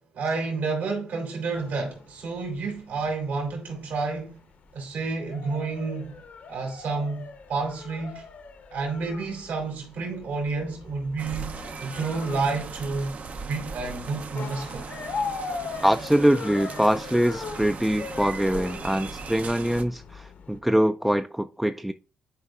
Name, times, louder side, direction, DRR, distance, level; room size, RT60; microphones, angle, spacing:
voice 1, 0.1-4.4 4.7-6.2 6.5-8.2 8.7-13.1 13.4-14.9, right 4 dB, 75° right, 2.4 m, -30 dB
sound 1, 1.5-20.6, left 5 dB, 65° left, 1.0 m, -40 dB
sound 2, 11.2-19.8, right 5 dB, 55° right, 0.6 m, -38 dB
voice 2, 15.8-21.9, equal, 5° right, 0.3 m, -23 dB
9.9 x 4.5 x 2.4 m
supercardioid pair, 55°, 3 cm